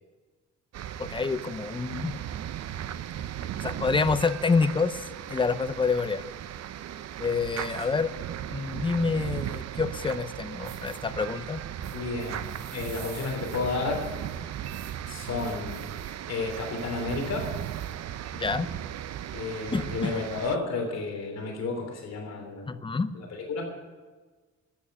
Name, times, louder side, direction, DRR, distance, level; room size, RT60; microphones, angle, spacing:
sound 1, 0.7-20.6, right 11 dB, 60° right, 0.6 m, -37 dB
voice 1, 1.0-2.2 3.6-6.2 7.2-8.1 8.5-11.6 18.3-18.7 19.7-20.1 22.7-23.1, left 4 dB, 15° left, 12 dB, 0.6 m, -27 dB
sound 2, 10.6-11.0 11.8-18.0, right 5 dB, 80° right, 6.4 m, -52 dB
voice 2, 11.9-14.1 15.1-15.8 16.3-17.5 19.3-22.7 23.1-23.7, left 3 dB, 60° left, 2 dB, 3.3 m, -32 dB
13.0 x 9.1 x 9.8 m, 1.3 s
cardioid pair, 155°, 29 cm